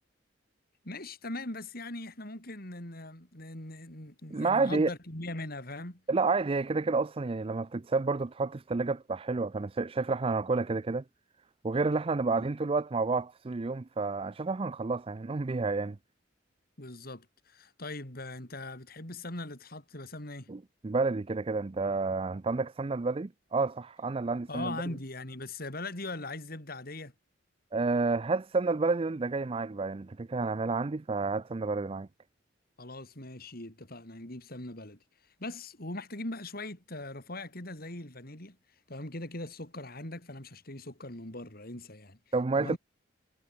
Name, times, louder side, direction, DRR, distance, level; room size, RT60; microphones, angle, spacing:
voice 1, 0.8-6.0 12.3-12.5 16.8-20.5 24.5-27.1 32.8-35.0 35.4-38.6 38.9-42.2 42.5-42.8, left 2 dB, 50° left, 5.1 m, -40 dB
voice 2, 4.3-4.9 6.1-11.0 11.6-16.0 20.5-24.8 27.7-32.1 42.3-42.8, right 3 dB, 30° right, 0.5 m, -30 dB
head